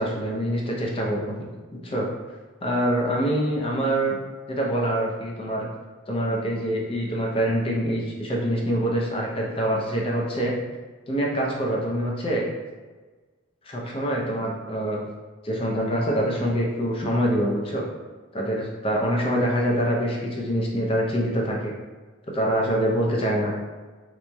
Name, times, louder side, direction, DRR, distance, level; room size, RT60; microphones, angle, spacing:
voice 1, 0.0-1.4 1.8-2.1 2.6-4.1 4.5-5.7 6.1-10.5 11.1-12.5 13.7-15.0 15.4-17.8 18.3-21.8 22.3-23.5, equal, 25° left, -2 dB, 0.5 m, -25 dB
3.9 x 3.1 x 2.2 m, 1.3 s
head